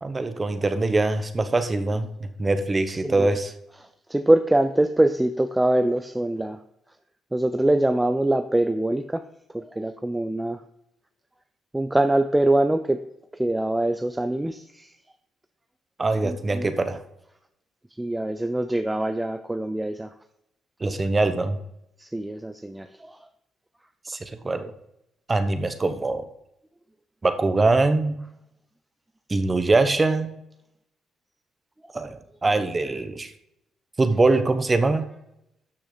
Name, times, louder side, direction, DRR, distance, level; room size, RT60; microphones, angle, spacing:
voice 1, 0.0-3.5 16.0-17.0 20.8-21.6 24.1-24.2 24.4-24.7 25.3-26.2 27.2-28.2 29.3-30.3 31.9-33.3 34.0-35.1, right 3 dB, 25° right, 9 dB, 1.2 m, -23 dB
voice 2, 4.1-6.6 7.3-9.2 9.5-10.6 11.7-13.0 13.4-14.9 16.2-16.7 18.0-20.1 22.0-23.2, right 1 dB, 10° right, 8 dB, 0.5 m, -23 dB
12.5 x 6.3 x 4.1 m, 0.80 s
cardioid pair, 90°, 0 cm